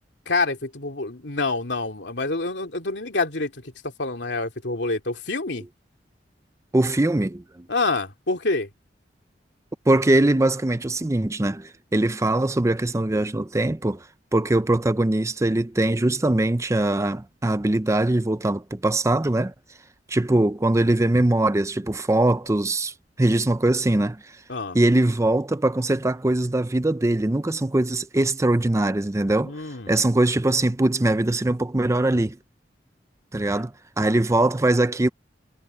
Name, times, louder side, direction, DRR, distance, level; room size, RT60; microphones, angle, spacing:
voice 1, 0.3-5.7 7.7-8.7 24.5-24.8 29.4-30.0 33.4-33.6, left 3 dB, 75° left, 2.8 m, -27 dB
voice 2, 6.7-7.7 9.9-14.1 14.3-19.5 20.1-24.4 24.7-29.6 29.9-32.4 33.3-35.1, right 1 dB, 15° right, 0.5 m, -22 dB
head